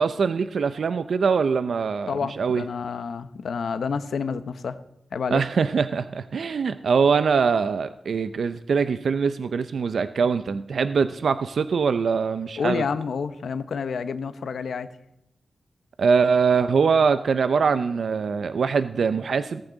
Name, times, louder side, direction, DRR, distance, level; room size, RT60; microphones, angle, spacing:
voice 1, 0.0-2.6 5.3-12.8 16.0-19.6, right 5 dB, 70° right, 12 dB, 0.5 m, -23 dB
voice 2, 2.1-4.8 5.1-5.4 12.6-14.9, left 5 dB, 80° left, 12 dB, 0.9 m, -29 dB
16.5 x 14.5 x 3.9 m, 0.82 s
wide cardioid pair, 115°, 0 cm